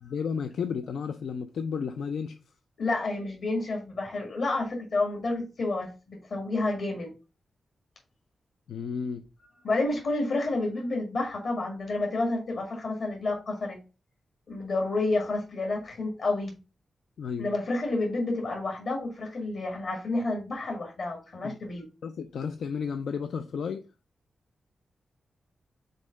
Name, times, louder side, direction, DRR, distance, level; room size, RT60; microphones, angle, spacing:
voice 1, 0.0-2.3 8.7-9.2 17.2-17.5 21.4-21.6 22.0-23.8, left 6 dB, 85° left, 0.4 m, -32 dB
voice 2, 2.8-7.1 9.6-13.8 14.5-16.5 17.4-21.9, left 2 dB, 60° left, 1.8 m, -30 dB
5.3 x 3.8 x 5.2 m
wide cardioid pair, 160°, 0 cm